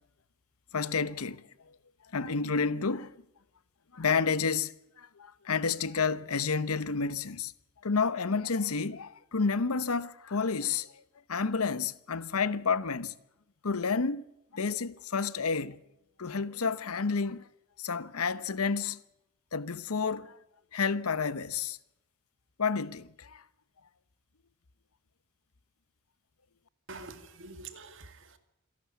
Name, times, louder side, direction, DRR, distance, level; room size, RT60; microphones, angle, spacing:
voice 1, 0.7-1.5 2.1-3.1 3.9-7.5 7.8-11.0 11.3-13.1 13.6-14.2 14.5-15.8 16.2-17.5 17.8-19.0 19.5-20.4 20.7-21.8 22.6-23.4, left 5 dB, 85° left, 0.9 m, -30 dB
voice 2, 26.9-28.4, right 3 dB, 60° right, 2.3 m, -46 dB
27.0 x 12.0 x 8.4 m
head